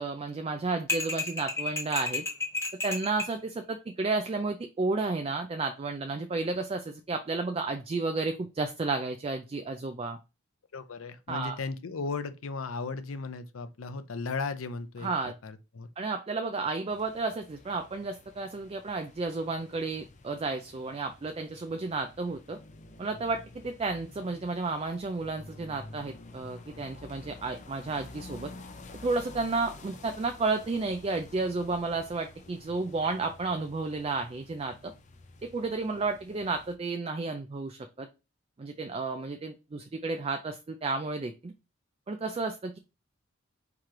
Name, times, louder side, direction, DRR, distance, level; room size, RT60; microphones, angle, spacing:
voice 1, 0.0-2.3 2.8-10.2 11.3-11.6 15.0-15.3 16.0-22.6 23.0-28.5 29.0-34.9 35.4-38.1 38.6-41.5 42.1-42.8, right 3 dB, 30° right, 0.3 m, -32 dB
sound 1, 0.9-3.4, left 2 dB, 15° left, 1.0 m, -32 dB
voice 2, 10.7-15.1 15.4-15.9, left 4 dB, 80° left, 0.6 m, -36 dB
sound 2, 16.9-36.8, left 2 dB, 35° left, 0.5 m, -50 dB
4.7 x 3.0 x 3.7 m
head